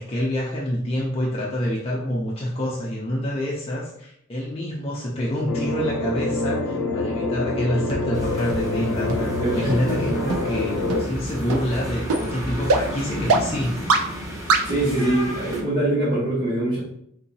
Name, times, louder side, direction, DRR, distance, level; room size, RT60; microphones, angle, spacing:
voice 1, 0.0-13.8, equal, 25° left, -4 dB, 0.4 m, -27 dB
sound 1, 5.5-11.0, left 2 dB, 85° left, 0.5 m, -26 dB
sound 2, 7.9-8.0 8.5-8.6 9.1-9.2 9.7-9.8 10.3-10.4 10.9-11.0 11.5-11.6 12.1-12.2 12.7-12.8 13.3-13.4 13.9-14.0 14.5-14.6, right 3 dB, 85° right, 0.5 m, -19 dB
sound 3, 8.1-15.6, equal, 15° right, 0.9 m, -32 dB
voice 2, 9.4-10.1 14.6-16.8, right 1 dB, 45° right, -8 dB, 1.3 m, -23 dB
3.8 x 2.7 x 2.7 m, 0.70 s
head